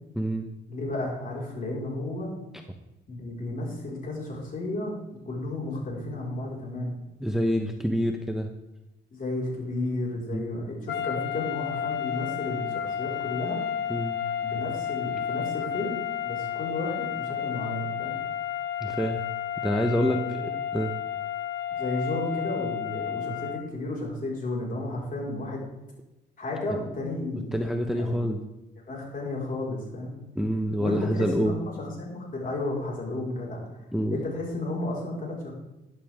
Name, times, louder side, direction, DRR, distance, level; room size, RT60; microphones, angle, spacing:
voice 1, 0.2-0.5 7.2-8.5 10.3-10.6 13.9-14.2 18.8-19.2 19.6-20.9 27.5-28.4 30.4-31.6 33.9-34.2, equal, ahead, 4 dB, 0.9 m, -27 dB
voice 2, 0.7-2.3 3.1-7.0 9.1-13.6 14.4-18.1 20.0-20.5 21.7-25.6 26.4-27.6 27.9-28.3 28.8-30.2 30.8-33.8 34.1-35.5, left 2 dB, 45° left, -3 dB, 4.8 m, -33 dB
sound 1, 10.9-23.7, left 9 dB, 65° left, 0.8 m, -32 dB
12.5 x 10.5 x 3.6 m, 0.99 s
cardioid pair, 90°, 20 cm